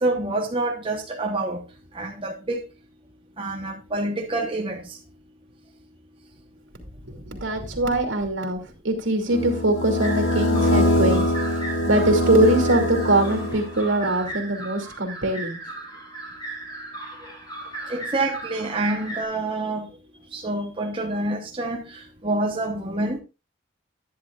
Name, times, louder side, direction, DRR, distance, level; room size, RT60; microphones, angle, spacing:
voice 1, 0.0-1.6 1.9-2.6 3.4-5.0 17.2-17.3 17.9-19.9 20.3-23.2, right 2 dB, 25° right, 1.0 m, -27 dB
voice 2, 7.1-15.6, right 1 dB, 75° right, 2.6 m, -23 dB
sound 1, 9.3-13.9, left 1 dB, 85° left, 2.3 m, -23 dB
sound 2, 10.0-19.2, right 2 dB, 20° left, 3.5 m, -37 dB
11.0 x 10.5 x 2.4 m
head